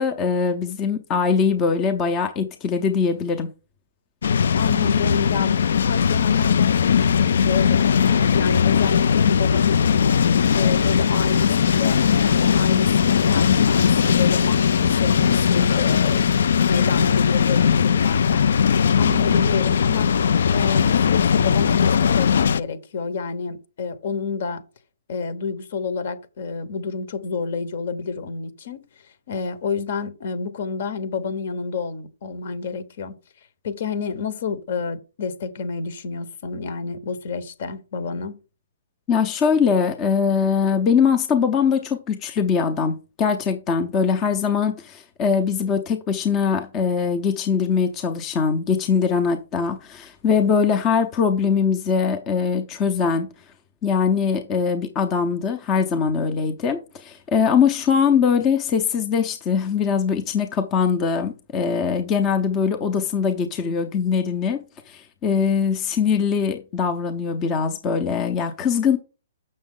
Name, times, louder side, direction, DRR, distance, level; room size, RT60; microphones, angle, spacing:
voice 1, 0.0-3.5 39.1-53.3 53.8-64.6 64.9-69.0, left 6 dB, 20° left, 0.6 m, -22 dB
sound 1, 4.2-22.6, left 7 dB, 70° left, 0.4 m, -19 dB
voice 2, 4.5-9.9 10.5-16.3 16.7-20.1 20.5-24.6 25.1-28.8 29.3-33.1 33.6-38.4, left 5 dB, 55° left, 1.0 m, -29 dB
6.9 x 6.4 x 3.7 m
hypercardioid pair, 160°, 0 cm